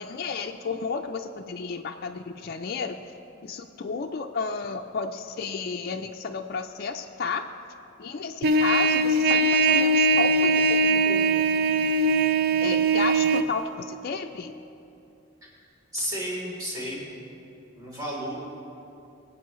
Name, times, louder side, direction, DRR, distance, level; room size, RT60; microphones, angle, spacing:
voice 1, 0.0-3.0 3.4-7.5 8.0-11.5 12.6-14.5, left 5 dB, 50° left, 3 dB, 0.4 m, -32 dB
Trumpet, 8.4-13.5, right 3 dB, 50° right, 0.4 m, -21 dB
voice 2, 15.9-17.0 17.7-18.3, equal, 20° right, -6 dB, 3.2 m, -32 dB
22.0 x 8.4 x 3.1 m, 2.7 s
head